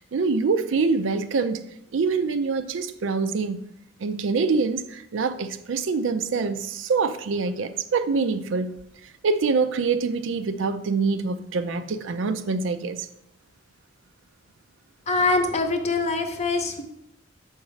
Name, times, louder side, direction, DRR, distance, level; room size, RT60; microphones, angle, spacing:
voice 1, 0.1-1.6 1.9-3.7 4.0-8.8 9.2-13.1, right 4 dB, 80° right, 0.4 m, -25 dB
voice 2, 15.1-16.8, left 3 dB, 35° left, 0.7 m, -23 dB
7.1 x 4.9 x 3.2 m
head